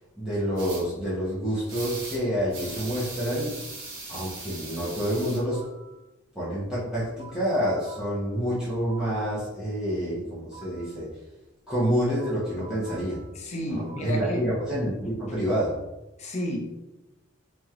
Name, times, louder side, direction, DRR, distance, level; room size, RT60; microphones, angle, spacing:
voice 1, 0.2-3.6 4.1-5.6 6.3-11.1 11.7-13.2 13.6-15.8, equal, 5° right, -11 dB, 1.0 m, -28 dB
sound 1, 0.6-0.8 1.7-2.2 2.5-5.4, right 2 dB, 75° right, 1.0 m, -39 dB
sound 2, 5.5-6.0 6.8-9.3 10.1-11.0 11.8-14.3, right 4 dB, 35° right, 1.5 m, -49 dB
voice 2, 13.4-14.4 16.2-16.7, equal, 35° left, 2 dB, 0.5 m, -31 dB
3.1 x 2.9 x 3.6 m, 1.0 s
head